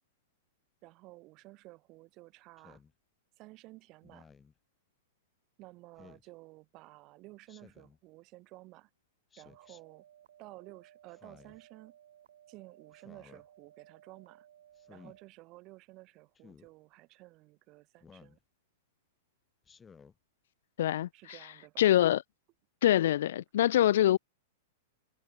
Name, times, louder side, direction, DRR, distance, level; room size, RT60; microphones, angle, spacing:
voice 1, 0.8-2.8 3.4-4.3 5.6-8.9 9.4-10.0 10.4-11.9 12.5-14.5 14.9-18.4 21.1-21.9, right 21 dB, 35° right, 3.4 m, -53 dB
Speech synthesizer, 2.6-2.9 4.0-4.5 6.0-6.3 7.5-8.0 9.3-9.8 11.1-11.6 12.9-13.4 14.8-15.2 16.4-16.7 18.0-18.4 19.6-20.2, left 6 dB, 10° left, 3.3 m, -57 dB
sound 1, 9.5-15.2, right 11 dB, 75° right, 6.4 m, -60 dB
voice 2, 20.8-21.1 21.8-22.2 22.8-24.2, left 12 dB, 70° left, 0.6 m, -24 dB
supercardioid pair, 155°, 0 cm